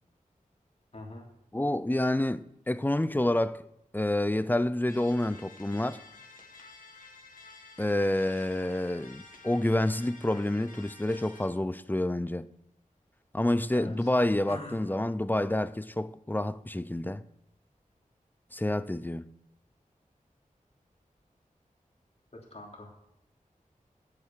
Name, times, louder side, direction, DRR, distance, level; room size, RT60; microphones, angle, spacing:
voice 1, 0.9-1.2 13.7-14.1 14.5-14.8 22.5-22.9, left 2 dB, 50° left, 3.2 m, -42 dB
voice 2, 1.5-3.7 3.9-6.0 7.8-12.5 13.3-17.2 18.5-19.3, left 1 dB, 15° left, 0.5 m, -28 dB
sound 1, 4.9-11.5, left 3 dB, 75° left, 1.9 m, -51 dB
8.3 x 8.2 x 7.3 m
wide cardioid pair, 60°, 14 cm